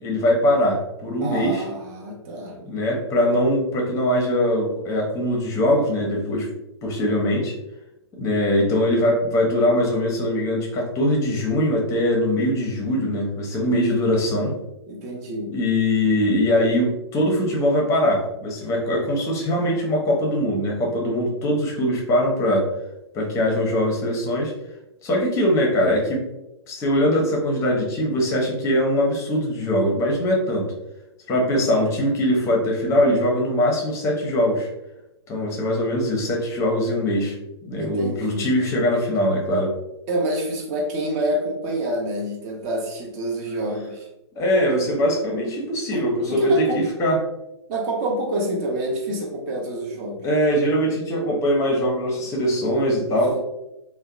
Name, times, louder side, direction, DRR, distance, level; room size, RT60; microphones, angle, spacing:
voice 1, 0.0-1.6 2.5-6.5 6.8-7.6 8.2-14.6 15.5-22.7 23.1-24.5 25.0-26.2 26.7-30.7 31.3-34.7 35.3-37.3 37.6-39.7 44.4-47.2 50.2-53.4, equal, 20° left, 0 dB, 0.6 m, -22 dB
voice 2, 1.2-2.5 14.9-15.5 37.8-38.5 40.1-44.1 45.9-46.9 47.7-50.3 53.3-53.4, right 1 dB, 35° right, 1 dB, 0.7 m, -27 dB
2.7 x 2.1 x 2.4 m, 0.90 s
figure-of-eight pair, 120°, 15 cm